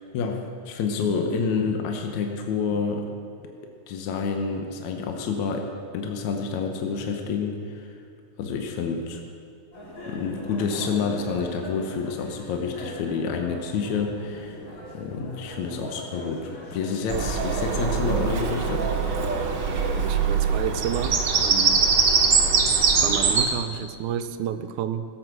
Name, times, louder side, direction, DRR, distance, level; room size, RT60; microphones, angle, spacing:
voice 1, 0.1-3.1 3.9-8.0 8.4-9.2 10.1-14.6 14.9-18.9, left 5 dB, 75° left, 3 dB, 2.2 m, -28 dB
sound 1, 9.7-17.4, equal, 30° left, 2.5 m, -41 dB
Bird vocalization bird call bird song, 17.1-23.5, right 5 dB, 55° right, 1.3 m, -22 dB
voice 2, 19.9-21.1 21.4-21.8 23.0-25.1, right 9 dB, 85° right, 10 dB, 2.1 m, -30 dB
17.5 x 8.1 x 6.2 m, 2.5 s
omnidirectional pair, 3.4 m